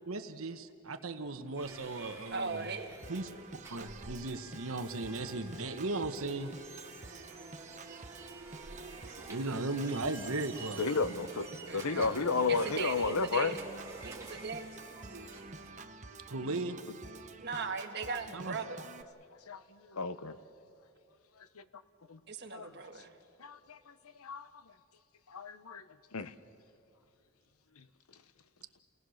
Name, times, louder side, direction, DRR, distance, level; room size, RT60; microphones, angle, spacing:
voice 1, 0.1-2.7 3.1-3.3 3.7-6.5 9.3-10.8 16.3-16.8 18.3-18.5, right 2 dB, 70° right, 8 dB, 1.2 m, -36 dB
sound 1, 1.6-15.7, right 3 dB, 15° right, 2.1 m, -50 dB
voice 2, 2.3-2.9 11.7-12.1 12.5-13.6 14.0-14.8 15.1-15.3 17.4-18.8 22.3-23.1, right 5 dB, 50° right, 4 dB, 1.6 m, -39 dB
Organ, 3.0-19.0, right 3 dB, 35° right, 0.8 m, -49 dB
voice 3, 10.8-11.5 11.7-13.6 18.1-18.2 18.7-18.8 19.5-20.4 21.6-21.7 22.1-22.2 22.5-22.7 23.4-24.5 25.3-25.8 26.1-26.3 27.8-27.9, left 4 dB, 80° left, 13 dB, 0.9 m, -33 dB
29.5 x 18.5 x 6.5 m, 2.5 s
head